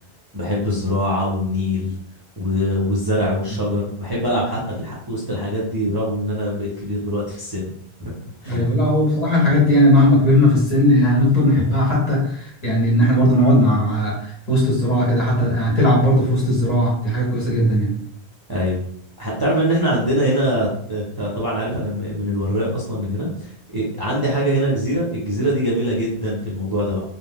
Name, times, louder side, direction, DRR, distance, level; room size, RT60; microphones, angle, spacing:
voice 1, 0.3-1.9 2.4-7.7 8.0-8.1 8.4-8.6 18.5-18.8 19.2-27.0, equal, 25° right, -6 dB, 0.6 m, -23 dB
voice 2, 8.4-17.9, left 1 dB, 40° left, -4 dB, 0.9 m, -17 dB
2.4 x 2.2 x 3.5 m, 0.64 s
omnidirectional pair, 1.1 m